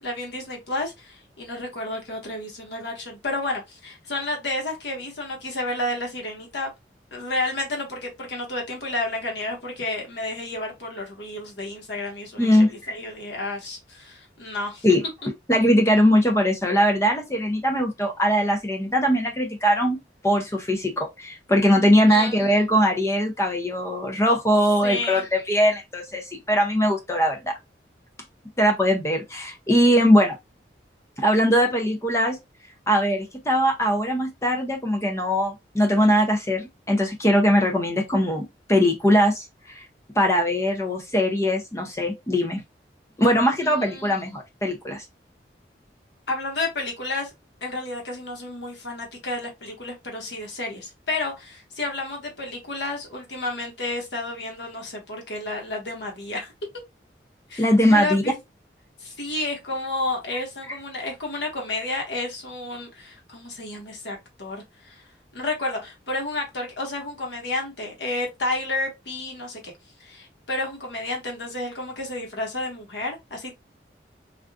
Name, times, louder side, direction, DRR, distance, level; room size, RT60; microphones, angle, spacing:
voice 1, 0.0-6.7 7.1-14.9 22.1-22.4 24.8-25.2 43.6-44.2 46.3-47.3 47.6-56.5 57.5-58.4 59.0-65.1 65.3-69.7 70.0-73.5, left 2 dB, 75° left, 1.3 m, -31 dB
voice 2, 15.5-20.0 20.2-27.6 28.6-30.4 31.2-32.4 32.9-39.8 40.2-42.6 43.2-45.0 57.6-58.2, equal, 15° left, 0.4 m, -21 dB
3.5 x 2.4 x 2.3 m
head